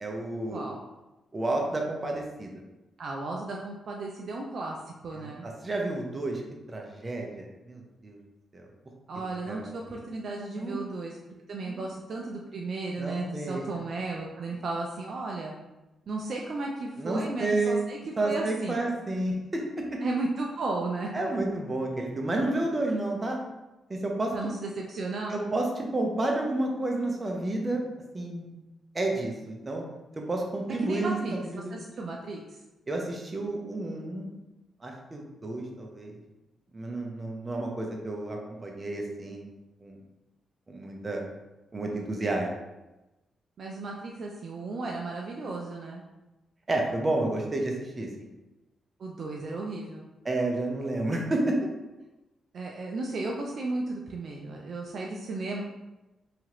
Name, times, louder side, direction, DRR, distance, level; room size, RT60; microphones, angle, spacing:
voice 1, 0.0-0.6 1.3-2.5 5.1-6.4 6.7-8.2 8.5-8.7 9.4-9.7 10.6-10.8 11.6-11.8 13.0-13.6 17.0-17.8 18.2-20.0 21.1-23.4 23.9-24.5 25.3-27.8 28.1-28.5 28.9-29.8 30.2-31.7 32.9-34.3 34.8-36.2 36.7-39.5 39.8-40.0 40.7-41.2 41.7-42.6 46.7-48.3 50.2-51.7, right 2 dB, 30° right, 1 dB, 0.7 m, -30 dB
voice 2, 0.5-0.8 3.0-5.5 9.1-11.2 11.5-15.5 16.1-18.0 18.2-18.8 20.0-21.1 24.3-25.4 30.8-31.4 31.7-32.4 43.6-46.0 49.0-50.1 52.5-55.6, right 3 dB, 60° right, -1 dB, 0.4 m, -34 dB
2.8 x 2.5 x 3.0 m, 1.0 s
supercardioid pair, 55°, 0 cm